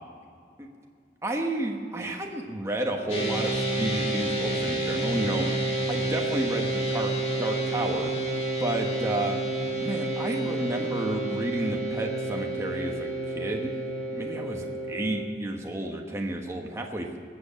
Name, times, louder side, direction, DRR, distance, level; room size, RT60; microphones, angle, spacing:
voice 1, 1.2-7.1 7.4-8.1 8.6-9.4 9.8-13.7 14.1-17.2, right 1 dB, 15° right, 1 dB, 1.1 m, -31 dB
sound 1, 3.1-15.2, right 2 dB, 35° left, 2.0 m, -29 dB
18.0 x 7.9 x 7.4 m, 2.2 s
head